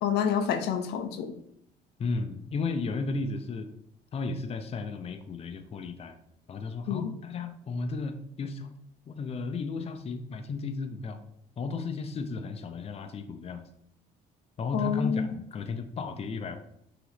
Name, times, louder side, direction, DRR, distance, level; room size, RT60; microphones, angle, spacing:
voice 1, 0.0-1.3 6.9-7.0 14.7-15.3, left 8 dB, 80° left, 7 dB, 0.8 m, -28 dB
voice 2, 2.0-3.7 4.1-6.2 6.5-8.8 9.1-11.2 11.6-13.7 14.6-16.6, left 3 dB, 35° left, 7 dB, 0.6 m, -34 dB
5.8 x 3.0 x 5.7 m, 0.72 s
cardioid pair, 110°, 17 cm